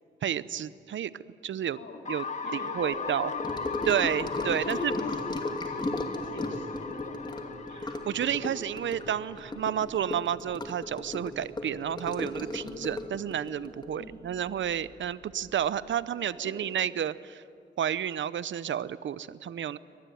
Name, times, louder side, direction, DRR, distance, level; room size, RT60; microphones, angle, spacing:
voice 1, 0.2-1.1 1.4-1.8 2.1-2.2 2.5-3.3 3.9-4.9 7.7-17.4 17.8-19.8, right 9 dB, 75° right, 17 dB, 0.7 m, -31 dB
sound 1, 2.0-9.9, left 4 dB, 40° left, 1.6 m, -38 dB
voice 2, 2.4-3.8 4.1-7.7 12.6-12.9 14.0-14.2 16.1-16.6, left 3 dB, 65° left, 1 dB, 3.9 m, -42 dB
Gurgling / Sink (filling or washing) / Trickle dribble, 3.4-15.1 15.3-15.6 15.9-16.0, left 2 dB, 20° left, 2.5 m, -36 dB
25.0 x 19.5 x 9.4 m, 2.6 s
wide cardioid pair, 105°, 20 cm